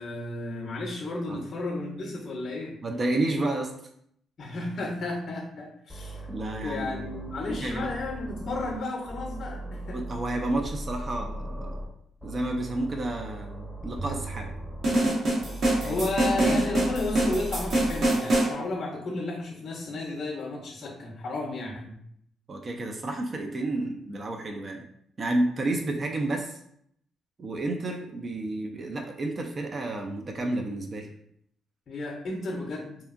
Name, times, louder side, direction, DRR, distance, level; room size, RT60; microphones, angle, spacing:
voice 1, 0.0-2.8 4.4-6.3 6.6-10.1 15.8-22.0 31.9-33.0, left 2 dB, 50° left, -1 dB, 0.6 m, -33 dB
voice 2, 2.8-3.7 6.3-7.3 7.6-7.9 9.9-11.9 12.2-14.5 15.8-16.0 16.4-16.7 22.5-24.9 25.2-26.6 27.4-31.1, right 2 dB, 40° right, 2 dB, 0.3 m, -31 dB
sound 1, 5.9-8.8 9.1-11.9 12.2-14.9 15.4-18.0, right 1 dB, 10° right, 0.7 m, -38 dB
sound 2, 14.0-15.8, right 6 dB, 85° right, 1.2 m, -41 dB
sound 3, 14.8-18.5, right 1 dB, 65° right, 1.0 m, -25 dB
2.7 x 2.4 x 2.4 m, 0.70 s
cardioid pair, 90°, 0 cm